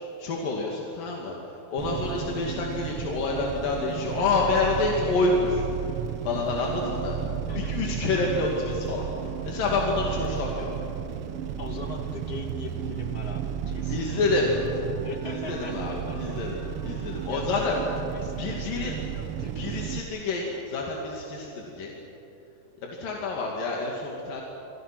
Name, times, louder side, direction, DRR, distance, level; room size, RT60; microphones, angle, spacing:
voice 1, 0.2-1.4 1.7-5.6 6.3-7.2 7.6-10.7 13.9-14.5 15.2-16.6 16.8-17.7 18.4-18.9 19.6-22.0 22.8-24.4, left 3 dB, 90° left, -1 dB, 4.1 m, -28 dB
sound 1, 1.8-20.0, right 8 dB, 75° right, 1.3 m, -33 dB
voice 2, 7.5-8.5 11.6-14.6 14.9-16.4 16.9-17.0 17.3-19.8, left 3 dB, 30° left, 3 dB, 2.4 m, -41 dB
Wind instrument woodwind instrument, 13.6-19.1, right 1 dB, 90° right, 7.0 m, -48 dB
28.5 x 26.0 x 6.1 m, 2.8 s
omnidirectional pair, 3.8 m